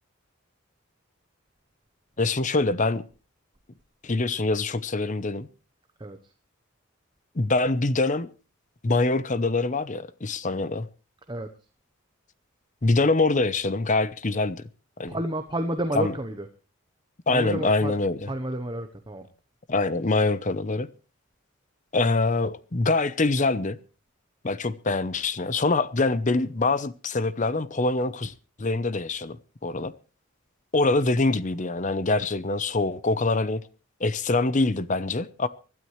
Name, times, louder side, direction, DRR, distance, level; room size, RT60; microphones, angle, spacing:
voice 1, 2.2-3.0 4.0-5.5 7.3-8.3 8.8-10.9 12.8-14.6 15.0-15.2 15.9-16.1 17.3-18.3 19.7-20.9 21.9-23.8 24.4-29.4 29.6-29.9 30.7-33.6 34.0-35.5, left 3 dB, 35° left, 0.7 m, -24 dB
voice 2, 15.1-16.5 17.3-17.9 18.3-19.3, right 1 dB, 20° right, 0.9 m, -30 dB
24.5 x 12.5 x 3.2 m
head